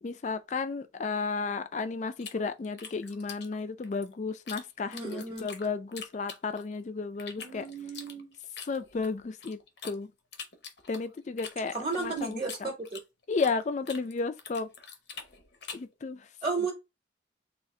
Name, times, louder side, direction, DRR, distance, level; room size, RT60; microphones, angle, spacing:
voice 1, 0.0-7.7 8.7-9.6 9.8-10.1 10.9-12.7 13.3-14.7 15.7-16.3, left 4 dB, 40° left, 0.3 m, -33 dB
sound 1, 2.2-4.6 4.9-6.8 7.2-10.0 10.3-13.6 13.9-15.9, left 6 dB, 60° left, 0.7 m, -44 dB
voice 2, 4.9-5.5 7.4-8.3 11.7-13.0 16.4-16.7, right 4 dB, 25° right, 0.8 m, -34 dB
3.6 x 2.5 x 3.1 m
head